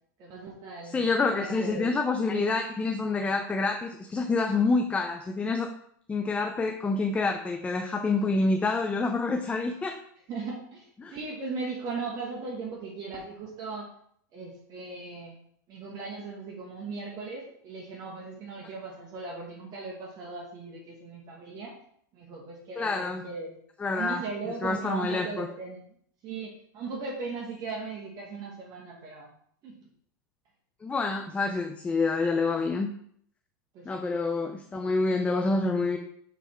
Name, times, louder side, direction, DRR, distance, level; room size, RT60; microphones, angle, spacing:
voice 1, 0.2-1.1 1.4-1.9 2.3-2.5 10.3-13.9 14.3-15.3 15.7-21.8 22.1-23.5 23.9-25.8 26.2-29.3 29.6-29.9 33.7-34.1, right 4 dB, 35° right, -2 dB, 1.4 m, -38 dB
voice 2, 0.9-5.7 6.1-10.0 11.0-11.2 22.8-23.2 23.8-24.2 24.6-25.5 30.8-32.9 33.9-36.0, left 3 dB, 10° left, 4 dB, 0.5 m, -27 dB
7.2 x 3.4 x 4.3 m, 0.65 s
supercardioid pair, 130°, 11 cm